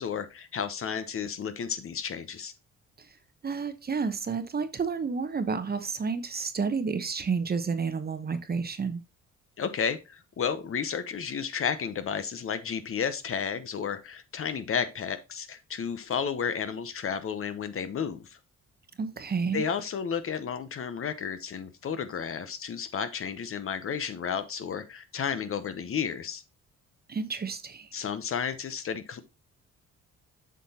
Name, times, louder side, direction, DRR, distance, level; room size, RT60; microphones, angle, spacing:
voice 1, 0.0-2.5 9.6-18.4 19.5-26.4 27.9-29.2, left 7 dB, 45° left, 0.8 m, -32 dB
voice 2, 3.4-9.0 19.0-19.6 27.1-27.9, right 5 dB, 30° right, 0.9 m, -30 dB
7.4 x 5.7 x 2.8 m
cardioid pair, 90°, 30 cm